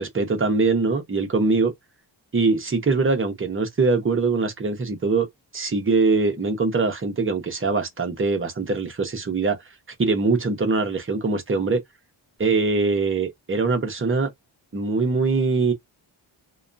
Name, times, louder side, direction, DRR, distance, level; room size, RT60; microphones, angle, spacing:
voice 1, 0.0-1.7 2.3-5.3 5.5-9.6 10.0-11.8 12.4-14.3 14.7-15.7, right 4 dB, 25° right, 0.8 m, -22 dB
2.7 x 2.3 x 2.5 m
wide cardioid pair, 140°, 46 cm